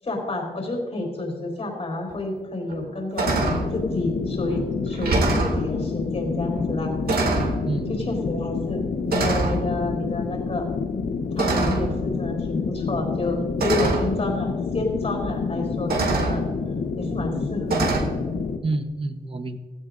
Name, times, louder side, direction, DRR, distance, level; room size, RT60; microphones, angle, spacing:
voice 1, 0.0-6.9 7.9-10.7 11.4-16.4 17.0-18.0, left 2 dB, 40° left, 2 dB, 4.2 m, -29 dB
sound 1, 2.1-2.2 2.7-2.9 3.2-3.7 4.5-4.6 4.9-5.6 6.6-6.7 7.1-7.6 8.5-8.7 9.1-9.6 11.4-12.0 13.1-13.2 13.6-14.1 15.2-15.3 15.9-16.4 17.7-18.0, right 3 dB, 80° right, 2.3 m, -24 dB
sound 2, 3.2-18.6, left 5 dB, 75° left, 1.0 m, -28 dB
voice 2, 7.6-8.7 18.6-19.6, right 2 dB, 35° right, 8 dB, 1.0 m, -30 dB
16.5 x 16.0 x 2.6 m, 1.3 s
wide cardioid pair, 125°, 16 cm